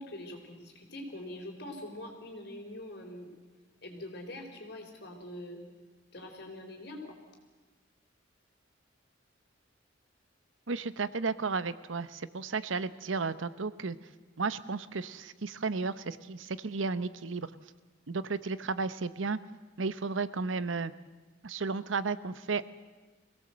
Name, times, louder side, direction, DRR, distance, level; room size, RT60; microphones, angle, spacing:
voice 1, 0.0-3.3 3.8-5.6 6.1-7.2, left 1 dB, 60° left, 2 dB, 4.4 m, -43 dB
voice 2, 10.7-14.0 14.4-17.5 18.1-19.4 19.8-20.9 21.4-22.7, right 4 dB, 90° right, 15 dB, 0.8 m, -33 dB
23.5 x 17.0 x 7.8 m, 1.3 s
head